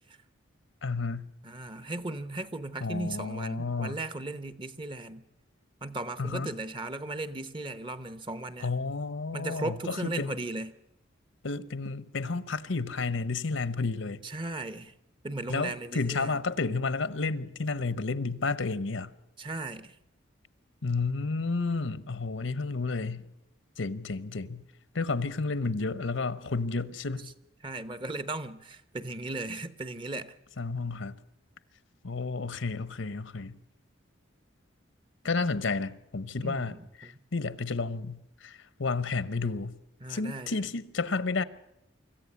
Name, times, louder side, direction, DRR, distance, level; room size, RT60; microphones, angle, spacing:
voice 1, 0.8-1.3 2.8-4.0 6.2-6.5 8.6-10.3 11.4-14.2 15.5-19.1 20.8-23.3 23.8-24.6 24.9-27.3 30.6-31.2 32.0-33.6 35.2-36.7 37.0-39.8 40.1-41.4, left 3 dB, 75° left, 0.9 m, -31 dB
voice 2, 1.4-5.2 5.8-8.7 9.3-10.7 14.2-14.9 15.2-16.4 19.4-20.0 27.6-30.4 36.4-37.2 40.0-40.6, right 2 dB, 25° right, 0.9 m, -37 dB
25.5 x 14.5 x 8.4 m
head